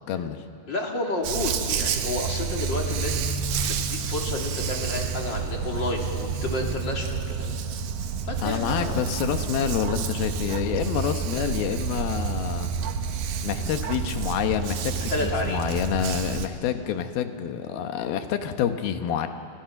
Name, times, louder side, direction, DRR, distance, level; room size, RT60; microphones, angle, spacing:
voice 1, 0.1-0.4 8.4-12.7 13.4-19.3, left 9 dB, 90° left, 7 dB, 3.2 m, -28 dB
voice 2, 0.7-3.3 3.6-7.5 8.2-9.0 15.1-15.6, left 2 dB, 35° left, 0 dB, 3.0 m, -30 dB
Dog, 1.2-16.5, right 6 dB, 70° right, 2.8 m, -29 dB
30.0 x 29.5 x 6.0 m, 2.5 s
omnidirectional pair, 4.2 m